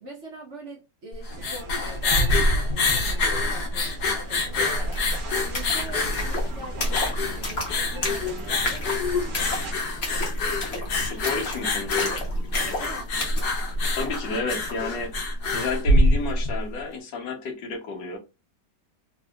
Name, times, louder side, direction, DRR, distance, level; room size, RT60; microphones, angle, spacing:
voice 1, 0.0-9.1 12.5-13.1, right 1 dB, 50° right, 1.0 m, -43 dB
sound 1, 1.1-16.6, left 2 dB, 70° left, 1.2 m, -25 dB
sound 2, 1.3-9.7, right 3 dB, 75° right, 0.4 m, -41 dB
sound 3, 4.3-4.4 4.6-14.8, left 2 dB, 45° left, 1.0 m, -34 dB
voice 2, 11.0-12.2 13.9-15.1 15.5-18.2, left 4 dB, 90° left, 1.5 m, -31 dB
3.4 x 2.8 x 2.2 m
omnidirectional pair, 1.9 m